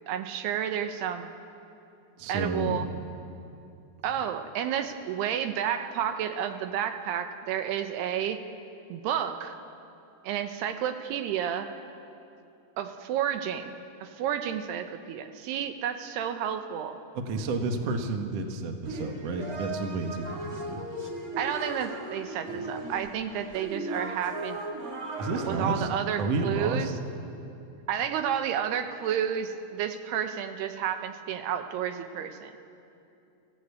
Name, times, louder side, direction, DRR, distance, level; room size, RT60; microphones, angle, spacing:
voice 1, 0.1-1.3 2.3-2.9 4.0-8.4 8.9-9.6 10.2-11.7 12.8-17.0 21.4-24.6 25.4-26.9 27.9-32.5, right 9 dB, 80° right, 8 dB, 2.9 m, -31 dB
voice 2, 2.2-2.9 17.1-20.8 22.5-22.7 25.2-25.9 26.2-26.9, right 3 dB, 60° right, 5 dB, 1.7 m, -31 dB
sound 1, 18.8-25.9, right 1 dB, 40° right, 1.3 m, -37 dB
25.0 x 16.0 x 8.3 m, 2.7 s
omnidirectional pair, 4.8 m